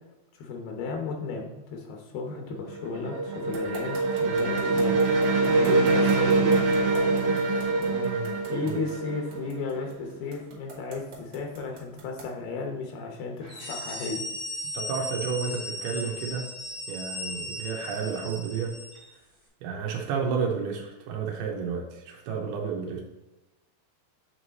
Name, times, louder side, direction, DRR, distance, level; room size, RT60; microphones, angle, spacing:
voice 1, 0.3-5.0 5.4-6.7 7.8-14.2 22.3-22.4, left 4 dB, 80° left, 2 dB, 2.8 m, -34 dB
sound 1, 2.4-10.1, right 3 dB, 70° right, 2.1 m, -24 dB
sound 2, 3.5-12.4, right 1 dB, 55° right, 1.9 m, -43 dB
degonflage aigu, 13.4-19.1, left 1 dB, 45° left, 0.6 m, -37 dB
voice 2, 14.6-16.5 16.9-18.7 19.6-23.0, right 6 dB, 90° right, -1 dB, 2.8 m, -31 dB
8.0 x 3.2 x 4.0 m, 1.0 s
omnidirectional pair, 4.4 m